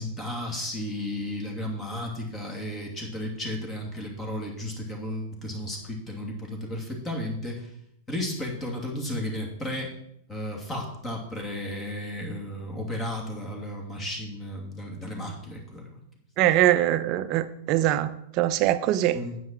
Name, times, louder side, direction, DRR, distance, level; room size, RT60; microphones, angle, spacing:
voice 1, 0.0-7.7 8.1-9.9 10.3-16.0 19.1-19.4, left 1 dB, 20° left, 0 dB, 2.8 m, -33 dB
voice 2, 16.4-18.1 18.4-19.2, right 13 dB, 40° right, 11 dB, 0.7 m, -22 dB
9.4 x 8.1 x 4.5 m, 0.76 s
figure-of-eight pair, 100°, 0 cm